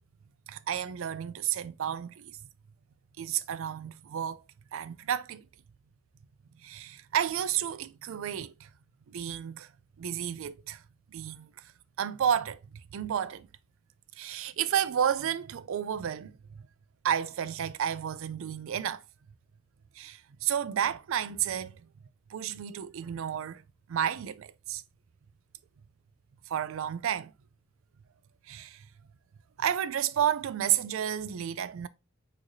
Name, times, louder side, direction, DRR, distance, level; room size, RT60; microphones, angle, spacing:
voice 1, 0.5-2.4 3.2-4.4 4.7-5.5 6.6-8.7 9.1-9.7 10.0-10.8 11.1-11.7 12.0-13.5 14.2-16.6 17.0-19.0 20.0-21.8 22.3-23.6 23.9-24.8 26.5-27.3 28.5-28.9 29.6-31.9, right 9 dB, 65° right, 0.4 m, -31 dB
6.2 x 3.2 x 2.6 m
head